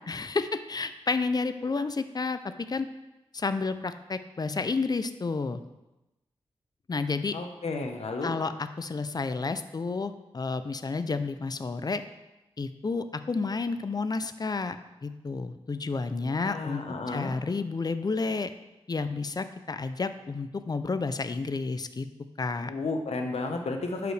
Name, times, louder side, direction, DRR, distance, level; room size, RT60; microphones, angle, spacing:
voice 1, 0.1-2.4 2.7-2.9 3.3-5.6 6.9-7.3 8.2-12.0 12.6-14.8 15.0-18.5 18.9-22.1 22.4-22.7, left 4 dB, 40° left, 10 dB, 0.5 m, -31 dB
voice 2, 7.3-8.3 16.3-17.3 22.7-24.1, left 3 dB, 75° left, 4 dB, 1.0 m, -32 dB
11.0 x 4.9 x 3.4 m, 0.99 s
wide cardioid pair, 80°, 11 cm